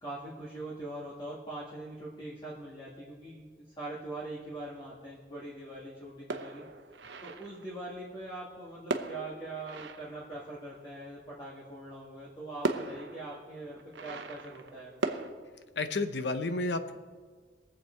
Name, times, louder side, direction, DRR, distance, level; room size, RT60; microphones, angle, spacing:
voice 1, 0.0-6.6 7.2-14.9, right 2 dB, 25° left, -7 dB, 1.8 m, -42 dB
sound 1, 6.3-7.8 8.9-10.8 12.0-12.1 12.6-15.3, right 2 dB, 90° right, 0.8 m, -37 dB
voice 2, 15.8-17.0, left 3 dB, 70° left, 10 dB, 0.8 m, -31 dB
21.5 x 7.6 x 4.5 m, 1.5 s
head